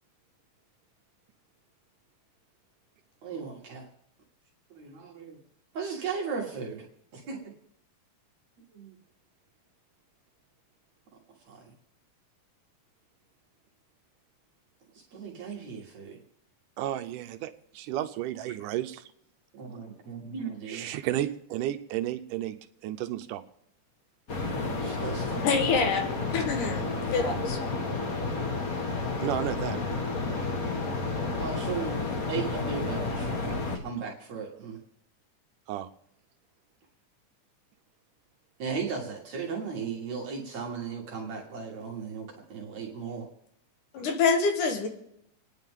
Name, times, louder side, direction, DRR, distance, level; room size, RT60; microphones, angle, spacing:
voice 1, 3.2-3.9 4.7-5.4 5.7-6.9 7.1-7.5 8.7-9.0 11.5-11.7 15.1-16.2 18.5-18.6 19.5-21.0 24.3-25.9 26.7-27.5 31.4-32.0 32.3-33.6 33.8-34.8 38.6-43.3, right 5 dB, 60° right, -1 dB, 2.8 m, -37 dB
voice 2, 16.8-19.0 20.7-22.6 22.8-23.4 29.2-30.0 30.3-30.4 33.4-33.6 35.7-35.9, right 12 dB, 80° right, 9 dB, 2.2 m, -32 dB
sound 1, 24.3-33.8, left 3 dB, 45° left, 1.1 m, -31 dB
voice 3, 25.4-26.0 26.3-26.8 27.1-27.7 43.9-44.9, left 5 dB, 75° left, 5 dB, 2.9 m, -26 dB
28.5 x 10.0 x 3.6 m, 0.75 s
omnidirectional pair, 3.7 m